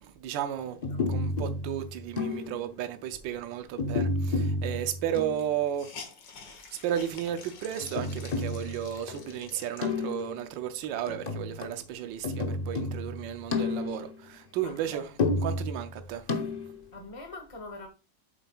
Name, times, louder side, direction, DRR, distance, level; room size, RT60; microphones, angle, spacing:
voice 1, 0.0-0.8 1.1-6.0 6.4-15.1 15.4-16.4, right 10 dB, 80° right, 1.4 m, -34 dB
sound 1, 0.8-2.7 3.8-5.5 7.8-9.3 9.8-10.5 11.1-11.8 12.2-14.2 15.2-16.8, left 2 dB, 45° left, 0.5 m, -31 dB
Hiss, 4.5-4.6 4.8-4.9 5.3-10.4 10.9-11.0 11.4-12.8, left 5 dB, 75° left, 2.1 m, -48 dB
voice 2, 14.6-15.0 16.9-17.9, left 2 dB, 25° left, 0.9 m, -43 dB
8.7 x 7.3 x 2.4 m
omnidirectional pair, 2.0 m